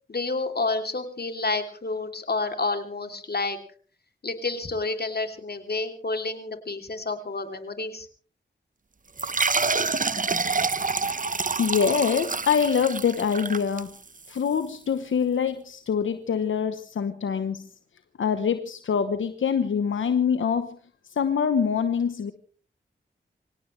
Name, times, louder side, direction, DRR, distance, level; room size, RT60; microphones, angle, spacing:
voice 1, 0.1-3.6 4.2-8.1, left 3 dB, 55° left, 6 dB, 3.0 m, -29 dB
sound 1, 9.2-14.3, right 4 dB, 45° right, 1.0 m, -27 dB
voice 2, 11.6-13.9 14.3-17.6 18.2-20.7 21.2-22.3, left 7 dB, 90° left, 9 dB, 1.0 m, -24 dB
24.5 x 17.0 x 3.2 m, 0.42 s
cardioid pair, 40°, 20 cm